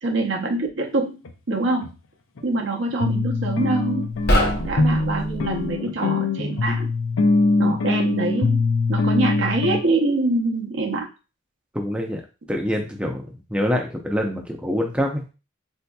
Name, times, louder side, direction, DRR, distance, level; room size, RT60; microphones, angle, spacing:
voice 1, 0.0-1.2 1.5-1.9 2.4-4.1 4.6-6.9 7.6-11.1, right 2 dB, 65° right, 0 dB, 0.7 m, -25 dB
sound 1, 1.2-1.3 1.8-1.9 2.4-2.5 3.0-9.8, left 3 dB, 80° left, 0.5 m, -22 dB
sound 2, 4.1-5.7, equal, 50° left, 0.7 m, -24 dB
voice 2, 11.7-12.2 12.5-15.2, equal, 5° right, 2 dB, 0.5 m, -25 dB
4.3 x 2.7 x 2.2 m, 0.31 s
head